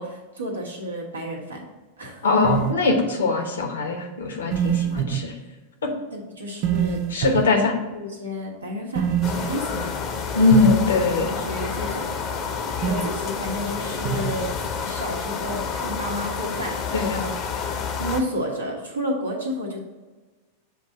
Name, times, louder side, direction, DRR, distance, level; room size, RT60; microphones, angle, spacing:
voice 1, 0.0-1.7 2.0-2.2 6.1-7.4 7.9-10.4 11.3-12.1 12.8-17.3 18.0-19.8, equal, 75° right, -2 dB, 1.3 m, -31 dB
voice 2, 2.2-5.3 5.8-5.9 7.1-7.8 10.3-11.3 16.9-17.3, left 3 dB, 70° left, 3 dB, 1.1 m, -21 dB
sound 1, 2.4-2.7 4.5-5.2 6.6-7.5 8.9-9.5 10.5-10.7 12.8-13.1 14.0-14.3, right 10 dB, 40° right, 0.4 m, -24 dB
sound 2, 9.2-18.2, left 5 dB, 35° left, 0.8 m, -29 dB
7.2 x 2.7 x 5.5 m, 1.3 s
figure-of-eight pair, 90°, 0 cm